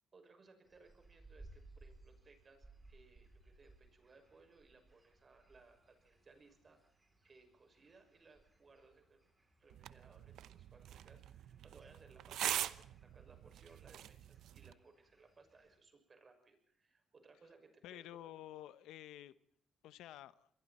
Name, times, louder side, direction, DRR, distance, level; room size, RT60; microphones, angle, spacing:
voice 1, 0.1-9.2 9.6-18.3, right 4 dB, 35° right, 6 dB, 6.1 m, -64 dB
sound 1, 0.6-15.8, right 2 dB, 15° right, 6.2 m, -64 dB
sound 2, 9.7-14.7, right 11 dB, 80° right, 0.8 m, -43 dB
voice 2, 17.8-19.3 19.8-20.5, left 13 dB, 90° left, 15 dB, 0.8 m, -51 dB
27.5 x 22.0 x 4.3 m, 0.66 s
cardioid pair, 90°, 0 cm